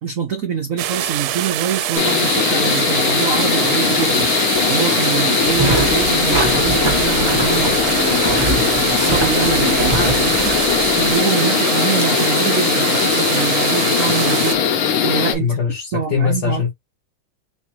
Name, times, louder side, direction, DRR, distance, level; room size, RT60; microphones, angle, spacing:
voice 1, 0.0-14.6 15.0-15.6 15.9-16.6, right 7 dB, 55° right, 0.9 m, -25 dB
sound 1, 0.8-14.6, right 12 dB, 80° right, 1.4 m, -24 dB
sound 2, 2.0-15.4, left 8 dB, 80° left, 1.8 m, -19 dB
sound 3, 5.5-11.2, right 3 dB, 15° right, 1.3 m, -25 dB
voice 2, 13.7-14.2 15.4-16.7, left 6 dB, 65° left, 1.7 m, -22 dB
4.0 x 2.5 x 4.4 m
omnidirectional pair, 2.3 m